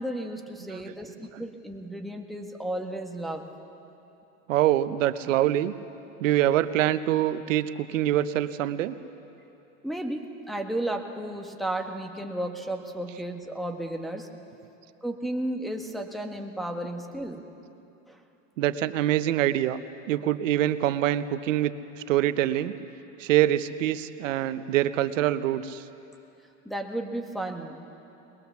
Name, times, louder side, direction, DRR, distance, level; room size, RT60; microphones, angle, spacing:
voice 1, 0.0-3.4 9.8-14.3 15.0-17.4 18.1-18.2 26.6-27.8, right 1 dB, ahead, 2 dB, 1.4 m, -33 dB
voice 2, 4.5-5.7 6.2-9.0 18.6-19.8 20.1-21.7 22.1-22.7 23.2-25.8, right 13 dB, 90° right, 13 dB, 0.9 m, -24 dB
21.5 x 21.0 x 7.1 m, 2.9 s
supercardioid pair, 130°, 37 cm